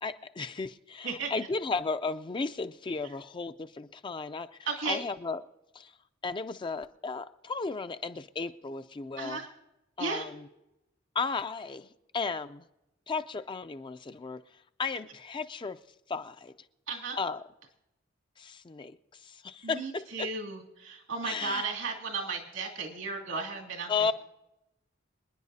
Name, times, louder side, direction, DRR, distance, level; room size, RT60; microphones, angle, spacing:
voice 1, 0.0-4.5 4.9-5.4 5.7-5.9 6.2-9.4 10.0-10.4 11.1-12.6 13.1-14.4 14.8-15.8 16.1-16.5 17.2-17.4 18.4-20.3 21.2-21.7 23.9-24.1, left 4 dB, 25° left, 0.4 m, -34 dB
voice 2, 4.7-5.0 9.2-9.5 10.0-10.2 16.9-17.2 19.6-23.9, right 4 dB, 85° right, 2.6 m, -34 dB
26.5 x 10.0 x 2.7 m
head